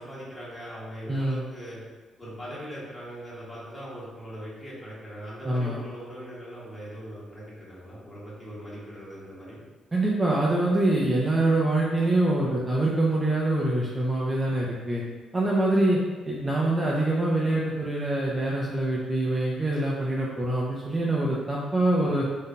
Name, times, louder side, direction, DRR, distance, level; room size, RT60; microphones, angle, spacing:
voice 1, 0.0-1.8 2.2-9.6, equal, 15° left, -8 dB, 1.4 m, -40 dB
voice 2, 1.1-1.4 5.5-5.8 9.9-15.0 15.3-16.0 16.3-22.3, right 1 dB, 20° right, -4 dB, 0.4 m, -25 dB
3.6 x 2.6 x 2.2 m, 1.4 s
cardioid pair, 90°, 0 cm